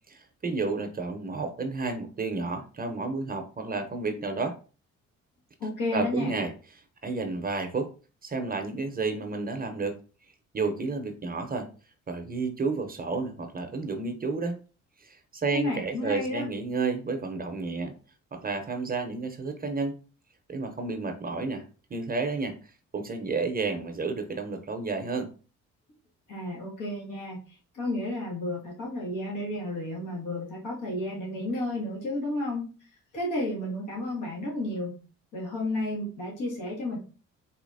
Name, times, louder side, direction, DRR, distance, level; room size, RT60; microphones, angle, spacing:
voice 1, 0.1-4.6 5.9-6.5 7.0-7.9 8.2-10.0 10.5-11.7 12.1-14.6 15.0-17.9 18.3-20.0 20.5-21.7 21.9-22.5 22.9-25.3, right 3 dB, 30° right, 6 dB, 0.6 m, -31 dB
voice 2, 5.6-6.3 15.5-16.5 26.3-32.6 33.1-35.0 35.3-37.0, left 1 dB, 80° left, -3 dB, 1.7 m, -32 dB
4.0 x 2.8 x 2.6 m, 0.36 s
cardioid pair, 90°, 30 cm